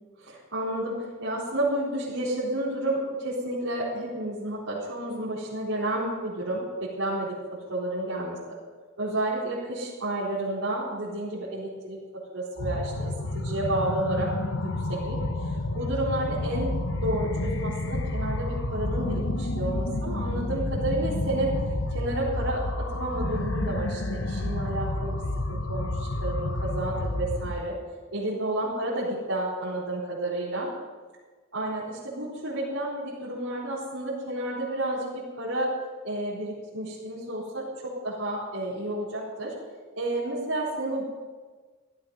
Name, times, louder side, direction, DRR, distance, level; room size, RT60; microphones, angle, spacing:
voice 1, 0.2-7.4 7.7-8.4 9.0-12.0 12.3-14.3 14.6-21.5 21.9-25.2 25.5-27.8 28.1-30.7 31.5-35.7 36.0-39.5 40.0-41.0, right 1 dB, 85° right, -11 dB, 4.3 m, -31 dB
sound 1, 12.6-27.5, left 2 dB, 65° left, 1.1 m, -30 dB
16.0 x 12.0 x 5.5 m, 1.4 s
head